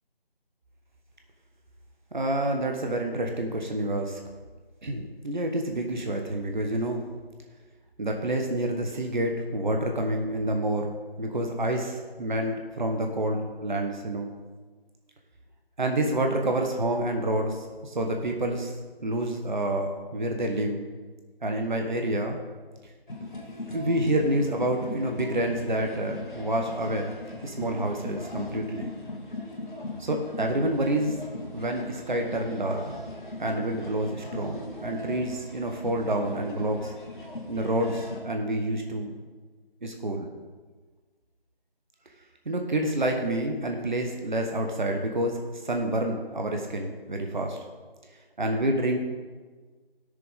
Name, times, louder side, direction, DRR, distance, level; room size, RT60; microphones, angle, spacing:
voice 1, 2.1-4.2 4.8-7.0 8.0-10.9 11.2-14.3 15.8-18.7 19.0-20.8 21.4-22.4 23.7-27.1 27.4-28.9 30.0-31.2 31.5-32.8 33.4-36.9 37.5-39.1 39.8-40.3 42.4-47.6 48.4-49.0, right 1 dB, 50° right, 3 dB, 1.3 m, -28 dB
sound 1, 23.1-38.2, left 1 dB, 55° left, 2.0 m, -39 dB
16.0 x 6.9 x 3.6 m, 1.4 s
figure-of-eight pair, 165°, 30 cm